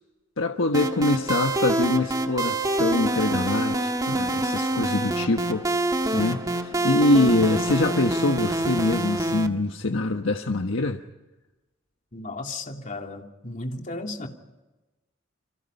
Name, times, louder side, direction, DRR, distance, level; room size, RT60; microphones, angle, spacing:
voice 1, 0.4-5.7 6.1-11.0, left 2 dB, 90° left, 1.3 m, -24 dB
sound 1, 0.7-9.5, right 1 dB, 20° right, 1.8 m, -26 dB
voice 2, 12.1-14.3, left 2 dB, 40° left, 2.8 m, -34 dB
29.5 x 26.0 x 5.6 m
head